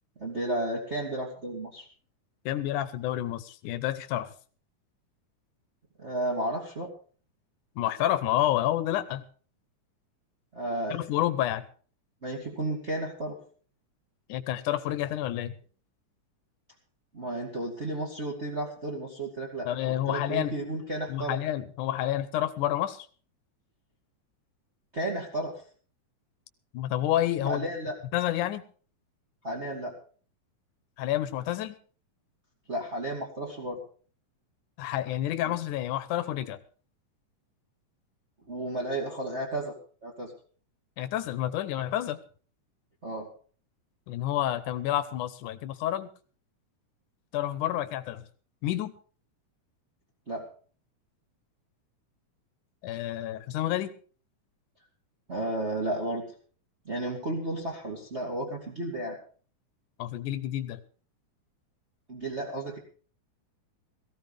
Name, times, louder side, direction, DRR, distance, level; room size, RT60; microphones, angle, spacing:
voice 1, 0.2-1.9 6.0-6.9 10.5-11.0 12.2-13.4 17.1-21.4 24.9-25.6 27.5-28.0 29.4-30.0 32.7-33.8 35.5-35.6 38.5-39.8 40.0-40.3 43.0-43.3 50.3-50.5 55.3-56.2 56.8-59.2 62.1-62.8, right 1 dB, 25° right, -2 dB, 2.4 m, -33 dB
voice 2, 2.5-4.3 7.8-9.2 10.9-11.6 14.3-15.5 19.7-20.5 21.1-23.1 26.7-27.7 28.1-28.6 31.0-31.8 34.8-36.6 41.0-42.2 44.1-46.1 47.3-48.2 48.6-48.9 52.8-53.9 60.0-60.8, left 13 dB, 85° left, 12 dB, 2.4 m, -29 dB
19.0 x 15.5 x 3.4 m, 0.41 s
omnidirectional pair, 3.5 m